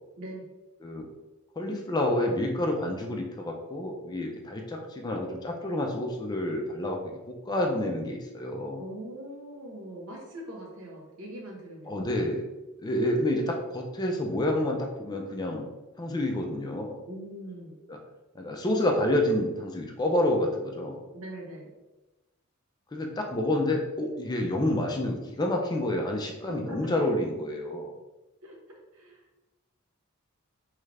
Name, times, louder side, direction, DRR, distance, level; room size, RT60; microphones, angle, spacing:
voice 1, 0.2-0.5 8.8-12.0 17.1-17.8 21.1-21.7 26.5-27.2 28.4-28.6 28.9-29.2, right 1 dB, 85° right, -1 dB, 0.8 m, -41 dB
voice 2, 1.6-7.0 7.3-8.8 11.9-12.4 12.8-15.7 16.0-17.0 18.4-21.0 22.9-27.9, left 1 dB, 20° left, 1 dB, 0.4 m, -28 dB
3.2 x 2.4 x 3.2 m, 1.1 s
head